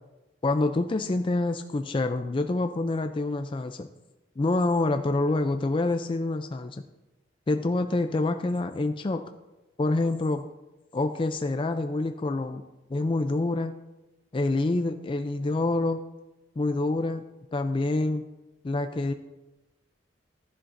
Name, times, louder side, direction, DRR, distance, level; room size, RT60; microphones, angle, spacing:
voice 1, 0.4-3.9 4.4-6.8 7.5-9.2 9.8-10.4 10.9-12.6 12.9-13.7 14.3-16.0 16.6-17.2 17.5-18.2 18.6-19.1, left 2 dB, 30° left, 7 dB, 0.4 m, -26 dB
13.0 x 11.0 x 2.6 m, 1.0 s
head